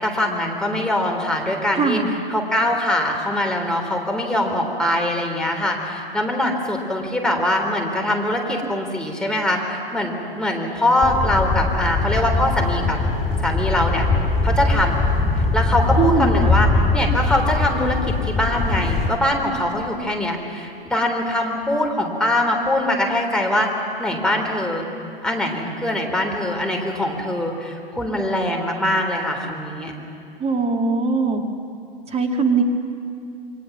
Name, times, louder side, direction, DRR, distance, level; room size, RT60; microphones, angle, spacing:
voice 1, 0.0-13.0 13.4-14.0 14.4-15.0 15.5-18.0 18.2-23.7 24.0-24.9 25.2-29.9, left 1 dB, 5° left, 0 dB, 3.4 m, -22 dB
voice 2, 1.8-2.1 16.0-16.5 30.4-31.4 32.1-32.6, right 4 dB, 20° right, 4 dB, 2.3 m, -20 dB
sound 1, 11.0-19.1, left 3 dB, 20° left, 2.6 m, -21 dB
28.5 x 23.5 x 6.0 m, 2.5 s
figure-of-eight pair, 100°, 29 cm